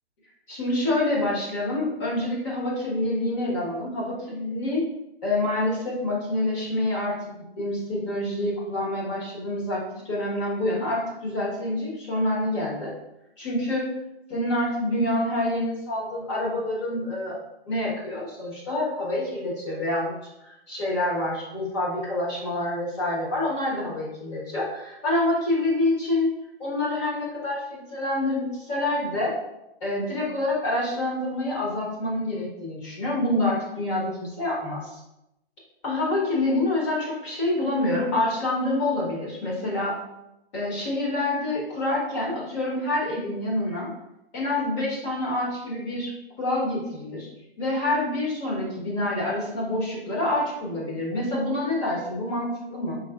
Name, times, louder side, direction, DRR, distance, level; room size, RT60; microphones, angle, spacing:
voice 1, 0.5-4.8 5.2-12.9 13.4-13.9 14.3-17.4 17.7-20.1 20.4-26.3 26.6-29.3 29.8-35.0 35.8-40.0 40.5-43.9 44.3-46.1 46.4-47.3 47.6-53.0, left 1 dB, 30° left, -5 dB, 1.4 m, -27 dB
5.1 x 3.9 x 2.5 m, 0.87 s
hypercardioid pair, 165°, 32 cm